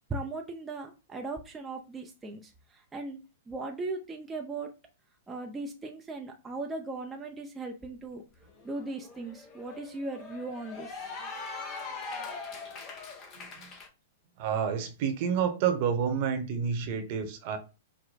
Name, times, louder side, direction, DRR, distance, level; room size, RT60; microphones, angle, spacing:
voice 1, 0.1-4.7 5.3-8.2 8.6-11.1, right 3 dB, 15° right, 0.6 m, -38 dB
Cheering / Applause, 8.0-8.1 8.4-13.9, left 4 dB, 35° left, 1.1 m, -42 dB
voice 2, 13.3-13.7 14.4-17.6, right 7 dB, 50° right, 1.0 m, -29 dB
4.9 x 2.2 x 4.1 m
hypercardioid pair, 110°, 0 cm